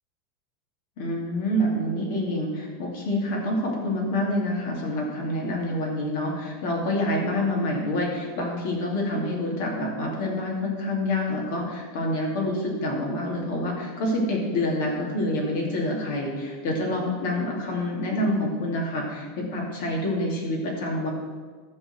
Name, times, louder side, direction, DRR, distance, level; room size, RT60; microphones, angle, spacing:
voice 1, 1.0-21.1, left 1 dB, 55° left, -1 dB, 2.6 m, -27 dB
12.0 x 4.2 x 7.7 m, 1.5 s
supercardioid pair, 170°, 0 cm